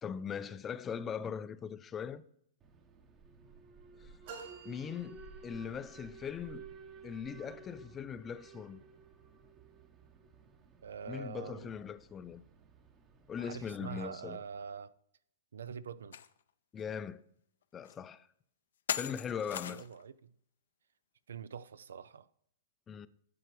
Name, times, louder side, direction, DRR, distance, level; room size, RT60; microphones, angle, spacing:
voice 1, 0.0-2.2 4.0-4.1 4.6-6.6 7.0-8.8 11.1-12.4 13.3-14.4 16.7-17.2 17.7-18.3 19.0-19.8 22.9-23.1, left 7 dB, 20° left, 0.4 m, -40 dB
Alarm, 2.6-14.6, right 5 dB, 25° right, 0.9 m, -55 dB
sound 1, 4.2-5.9, right 5 dB, 55° right, 3.7 m, -50 dB
voice 2, 10.8-11.7 13.4-14.9 15.5-16.2 19.7-20.3 21.3-22.3, right 7 dB, 85° right, 0.5 m, -44 dB
sound 2, 16.1-16.3 16.8-16.9 17.8-17.9 18.9-20.0, left 9 dB, 75° left, 0.5 m, -38 dB
10.5 x 7.8 x 3.2 m
hypercardioid pair, 140°, 0 cm